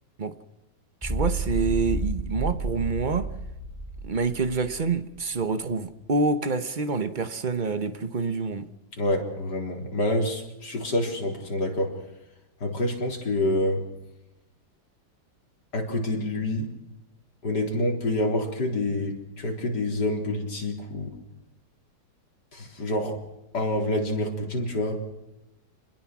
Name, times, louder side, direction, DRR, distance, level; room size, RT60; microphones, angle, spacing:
sound 1, 1.0-5.2, right 2 dB, ahead, 5.1 m, -31 dB
voice 1, 1.0-3.3 4.0-8.7, right 4 dB, 30° right, 1.1 m, -27 dB
voice 2, 9.0-12.0 12.6-13.9 15.7-16.7 17.4-21.1 22.5-23.2 23.5-25.0, left 1 dB, 70° left, 4.5 m, -27 dB
28.0 x 21.0 x 6.2 m
omnidirectional pair, 1.9 m